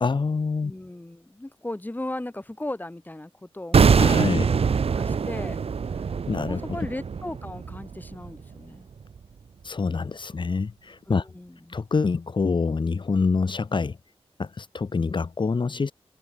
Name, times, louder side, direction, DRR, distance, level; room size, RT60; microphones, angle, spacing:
voice 1, 0.0-0.7 4.0-4.5 6.3-6.6 9.6-11.2 11.7-14.0 14.4-15.9, left 4 dB, 50° left, 1.4 m, -26 dB
voice 2, 0.6-5.6 6.5-8.9 11.1-11.6, left 1 dB, 15° left, 4.8 m, -37 dB
sound 1, 3.7-8.8 9.0-9.2, right 6 dB, 70° right, 1.2 m, -23 dB
wide cardioid pair, 85°, 11 cm